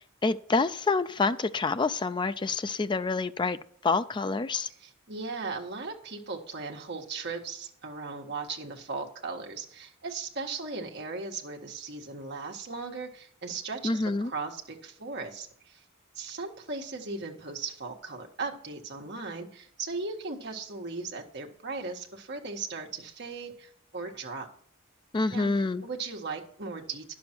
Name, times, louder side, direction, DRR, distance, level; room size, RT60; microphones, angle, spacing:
voice 1, 0.2-3.6 3.8-4.7 13.8-14.3 25.1-25.8, left 3 dB, 25° left, 11 dB, 0.4 m, -27 dB
voice 2, 4.7-15.8 16.1-24.5 25.3-25.5 25.8-27.1, right 4 dB, 55° right, 1 dB, 1.5 m, -37 dB
10.5 x 7.0 x 4.5 m, 0.65 s
head